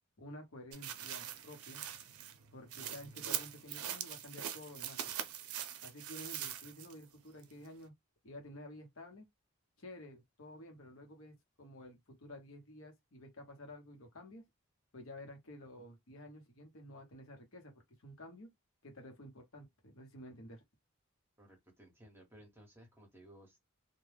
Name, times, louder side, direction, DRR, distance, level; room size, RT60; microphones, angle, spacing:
voice 1, 0.2-1.8 2.5-5.0 5.8-7.9 8.2-9.3 9.8-14.4 14.9-17.7 18.0-18.5 18.8-20.6, left 1 dB, 65° left, 0.9 m, -51 dB
sound 1, 0.7-7.0 7.4-7.5, right 10 dB, 80° right, 0.5 m, -42 dB
voice 2, 21.4-23.6, right 1 dB, 10° right, 0.9 m, -58 dB
2.2 x 2.1 x 3.2 m
head